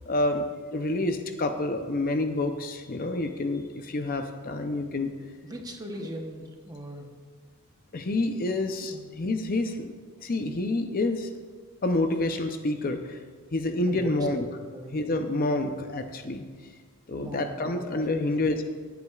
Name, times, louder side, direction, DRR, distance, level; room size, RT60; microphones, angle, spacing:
voice 1, 0.1-5.1 6.0-6.1 7.9-9.9 10.2-11.3 11.8-13.2 13.5-14.5 14.9-16.4 17.1-18.6, left 2 dB, 40° left, 6 dB, 0.6 m, -28 dB
voice 2, 5.4-7.1 8.9-9.1 13.9-14.3 14.7-15.0 17.1-17.8 18.2-18.5, equal, 15° right, 3 dB, 0.9 m, -39 dB
19.0 x 8.2 x 2.4 m, 1.5 s
head